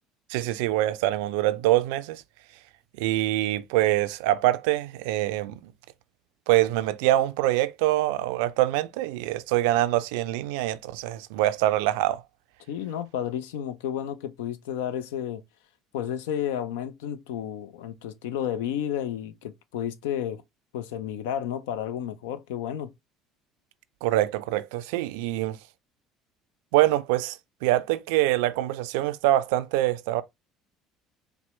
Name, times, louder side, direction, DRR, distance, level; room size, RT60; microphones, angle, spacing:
voice 1, 0.3-2.2 3.0-5.6 6.5-12.2 24.0-25.6 26.7-30.2, right 15 dB, 75° right, 0.3 m, -24 dB
voice 2, 12.7-15.4 15.9-20.4 20.7-22.9, left 10 dB, 80° left, 0.4 m, -31 dB
4.3 x 2.0 x 3.0 m
hypercardioid pair, 70°, 0 cm